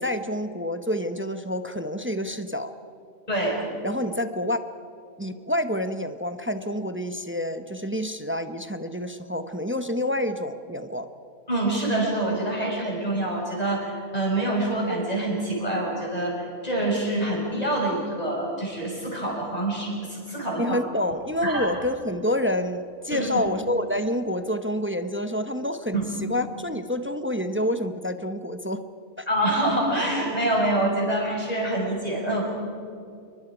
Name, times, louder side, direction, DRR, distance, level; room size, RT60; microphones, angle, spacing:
voice 1, 0.0-2.7 3.8-4.6 5.2-11.1 20.6-26.0 26.3-28.8 29.2-29.3, left 1 dB, 15° right, 9 dB, 0.5 m, -28 dB
voice 2, 3.3-3.6 11.5-20.8 21.4-21.7 23.1-23.5 25.9-26.0 29.3-32.4, right 1 dB, 25° left, -2 dB, 6.1 m, -26 dB
28.0 x 23.5 x 5.0 m, 2.5 s
omnidirectional pair, 1.4 m